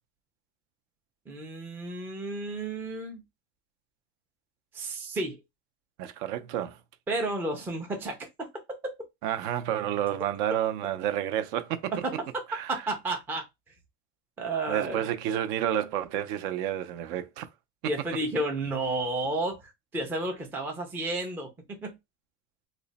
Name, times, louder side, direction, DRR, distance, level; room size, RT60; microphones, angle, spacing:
voice 1, 1.3-3.2 4.7-5.4 7.1-9.0 12.0-12.1 12.7-13.4 14.4-15.1 17.8-22.0, right 2 dB, 5° right, 0.3 m, -32 dB
voice 2, 6.0-6.8 9.2-11.9 12.5-12.7 14.7-17.5, right 11 dB, 65° right, 0.6 m, -30 dB
3.0 x 2.1 x 3.9 m
cardioid pair, 165°, 37 cm